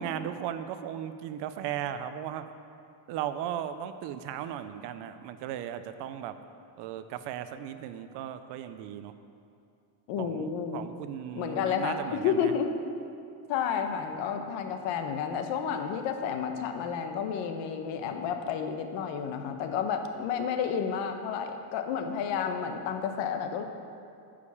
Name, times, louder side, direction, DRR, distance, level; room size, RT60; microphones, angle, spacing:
voice 1, 0.0-2.4 3.1-6.4 6.8-9.1 10.2-12.5, right 10 dB, 60° right, 11 dB, 0.5 m, -36 dB
voice 2, 10.1-10.8 11.3-12.7 13.5-23.6, left 7 dB, 65° left, 6 dB, 0.9 m, -31 dB
9.7 x 5.1 x 7.0 m, 2.5 s
cardioid pair, 175°, 49 cm